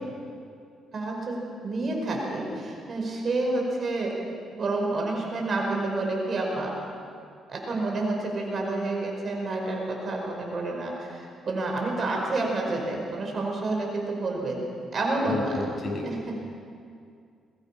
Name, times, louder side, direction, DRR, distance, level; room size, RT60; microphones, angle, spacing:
voice 1, 0.9-4.2 4.5-6.7 7.5-14.6 14.9-15.7 16.0-16.3, right 2 dB, 45° right, 0 dB, 5.3 m, -29 dB
voice 2, 15.2-16.0, left 2 dB, 35° left, -2 dB, 7.1 m, -31 dB
22.0 x 21.0 x 5.8 m, 2.4 s
cardioid pair, 90°, 0 cm